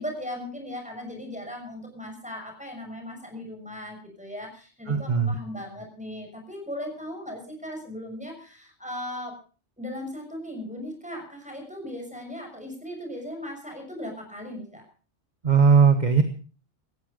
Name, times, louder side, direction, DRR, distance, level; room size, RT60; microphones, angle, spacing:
voice 1, 0.0-9.4 9.8-14.8, left 1 dB, 5° right, 3 dB, 6.5 m, -37 dB
voice 2, 4.9-5.3 15.4-16.2, right 5 dB, 40° right, 9 dB, 1.4 m, -18 dB
18.0 x 14.0 x 5.3 m, 0.38 s
omnidirectional pair, 1.1 m